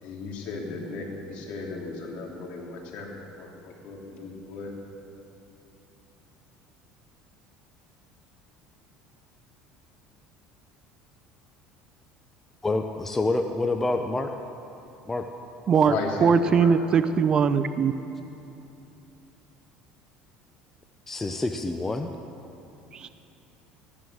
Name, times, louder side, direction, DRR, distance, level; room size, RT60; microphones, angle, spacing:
voice 1, 0.0-3.1 3.4-4.7 15.9-16.7, left 3 dB, 60° left, -1 dB, 3.0 m, -35 dB
voice 2, 12.6-14.3 15.1-15.3 15.9-16.0 21.1-22.1, left 2 dB, 15° left, 5 dB, 0.6 m, -27 dB
voice 3, 16.2-17.9 22.9-23.1, right 6 dB, 35° right, 13 dB, 0.5 m, -21 dB
14.5 x 11.0 x 6.5 m, 2.9 s
cardioid pair, 120°, 2 cm